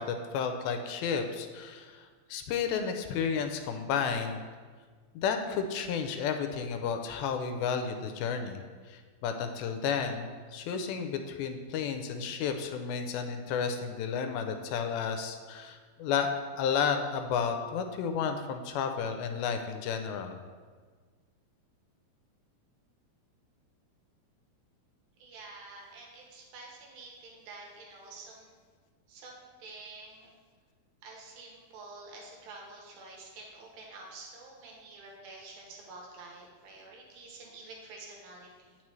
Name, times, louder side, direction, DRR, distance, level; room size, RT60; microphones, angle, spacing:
voice 1, 0.0-4.4 5.2-8.6 8.9-16.3 16.6-20.4, left 6 dB, 85° left, 6 dB, 2.4 m, -32 dB
voice 2, 25.2-28.5 29.1-30.3 31.0-38.8, right 3 dB, 75° right, -2 dB, 2.8 m, -48 dB
8.7 x 6.0 x 3.1 m, 1.5 s
omnidirectional pair, 4.3 m